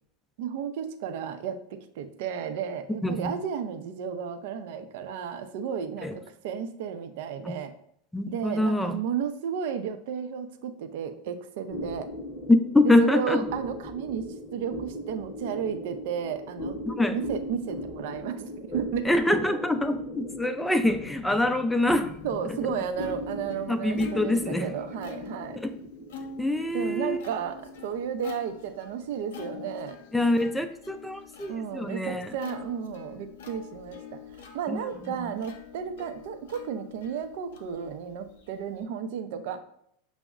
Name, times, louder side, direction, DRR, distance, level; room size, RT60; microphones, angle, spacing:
voice 1, 0.4-7.7 8.3-12.1 13.0-16.8 17.1-19.1 22.2-25.6 26.7-30.0 31.5-34.2 34.5-39.6, right 7 dB, 65° right, 9 dB, 0.4 m, -33 dB
voice 2, 3.0-3.3 6.0-6.2 7.4-7.5 8.1-9.0 12.5-13.4 16.9-17.2 19.0-22.1 23.7-24.7 25.6-25.7 26.4-27.2 30.1-32.3 34.7-35.3, left 1 dB, 5° left, 9 dB, 0.4 m, -25 dB
sound 1, 11.7-30.5, left 1 dB, 30° left, 0.7 m, -40 dB
Plucked string instrument, 22.1-38.8, left 7 dB, 75° left, 0.5 m, -46 dB
6.0 x 2.0 x 2.3 m, 0.69 s
hypercardioid pair, 95°, 0 cm